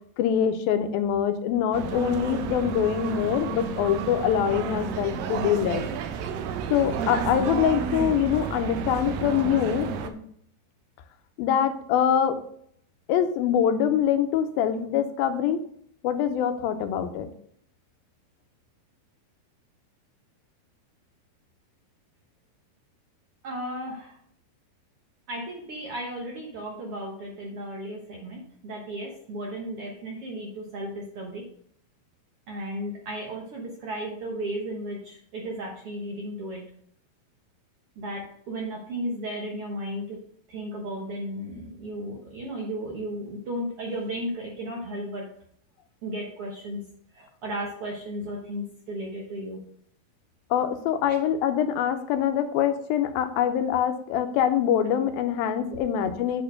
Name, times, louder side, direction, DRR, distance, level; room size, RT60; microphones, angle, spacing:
voice 1, 0.2-5.8 6.7-10.1 11.4-12.4 13.1-15.6 16.0-17.3 50.5-56.4, left 9 dB, 85° left, 8 dB, 2.6 m, -24 dB
sound 1, 1.7-10.1, right 6 dB, 80° right, 2.4 m, -31 dB
voice 2, 23.4-24.2 25.3-31.4 32.5-36.6 38.0-40.2 40.5-45.3 46.0-46.8 47.1-49.6 51.1-51.2 55.7-55.8, right 1 dB, 55° right, -1 dB, 1.6 m, -34 dB
8.5 x 4.4 x 6.4 m, 0.64 s
omnidirectional pair, 4.1 m